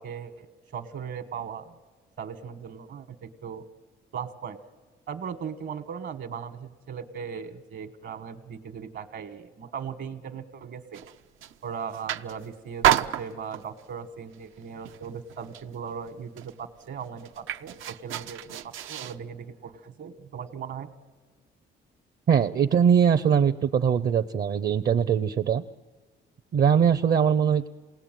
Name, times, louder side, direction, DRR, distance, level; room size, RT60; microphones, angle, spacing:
voice 1, 0.0-1.8 2.2-3.6 4.1-4.6 5.1-11.0 11.6-20.9, right 7 dB, 65° right, 9 dB, 1.5 m, -38 dB
sound 1, 10.9-11.6 11.9-12.5 12.8-13.8 14.3-14.6 14.8-15.8 16.1-16.2 16.4-19.2, right 12 dB, 85° right, 0.7 m, -29 dB
voice 2, 22.3-25.6 26.5-27.7, right 7 dB, 50° right, 9 dB, 0.7 m, -21 dB
27.5 x 18.5 x 9.2 m, 1.4 s
cardioid pair, 90°, 20 cm